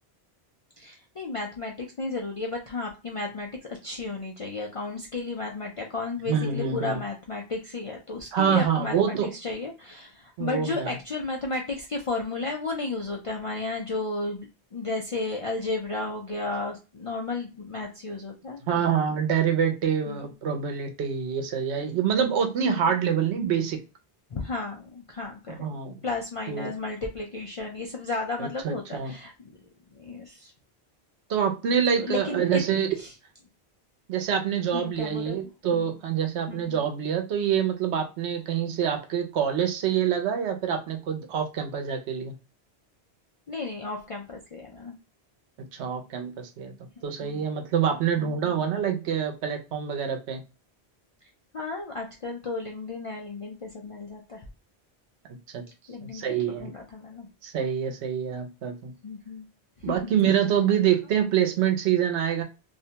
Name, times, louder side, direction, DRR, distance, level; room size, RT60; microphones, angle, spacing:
voice 1, 0.8-3.5 3.8-18.8 20.1-20.3 22.6-22.9 24.3-25.7 26.0-29.5 29.9-30.5 31.9-32.6 33.0-33.1 34.7-35.4 35.7-36.0 36.5-36.9 43.5-45.0 47.2-47.5 48.2-48.7 51.5-54.5 55.9-57.3 59.0-59.5 59.8-60.1, left 3 dB, 60° left, 0 dB, 0.3 m, -33 dB
voice 2, 6.3-7.0 8.3-9.3 10.4-10.9 18.6-23.8 25.6-26.0 26.5-26.7 28.4-29.1 31.3-32.9 34.1-42.3 45.7-46.7 47.0-50.4 55.5-55.6 56.0-56.7 57.4-58.9 59.8-62.4, right 8 dB, 90° right, 5 dB, 0.9 m, -26 dB
2.5 x 2.1 x 2.7 m, 0.30 s
omnidirectional pair, 1.1 m